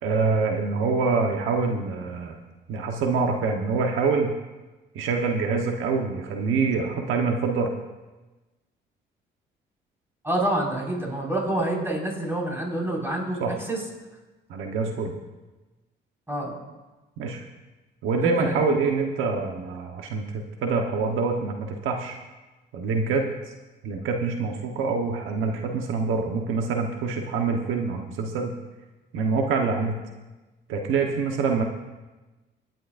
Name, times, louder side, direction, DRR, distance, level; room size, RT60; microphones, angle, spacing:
voice 1, 0.0-2.4 2.7-4.3 4.9-7.7 13.4-13.5 14.5-15.1 17.2-17.4 18.0-22.2 22.7-23.3 23.8-28.5 29.1-30.0 30.7-31.6, right 4 dB, 90° right, 3 dB, 1.2 m, -25 dB
voice 2, 10.2-13.4 13.7-13.8 16.3-16.6 18.2-18.5, right 1 dB, 10° right, -2 dB, 5.4 m, -27 dB
24.0 x 10.5 x 2.6 m, 1.1 s
cardioid pair, 90°, 20 cm